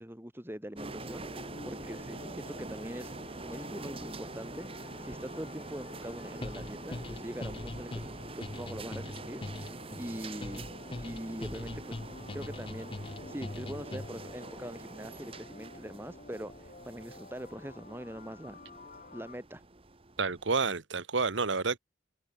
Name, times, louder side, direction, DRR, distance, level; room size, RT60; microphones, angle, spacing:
voice 1, 0.0-8.1 8.4-10.7 11.0-12.1 12.3-18.6 19.1-19.6, equal, 10° right, 2.9 m, -43 dB
sound 1, 0.8-19.4, left 2 dB, 45° left, 3.5 m, -51 dB
sound 2, 0.8-20.5, right 2 dB, 30° right, 1.6 m, -45 dB
sound 3, 6.4-14.3, left 2 dB, 30° left, 0.7 m, -41 dB
voice 2, 20.2-21.8, right 4 dB, 80° right, 1.3 m, -29 dB
open air
head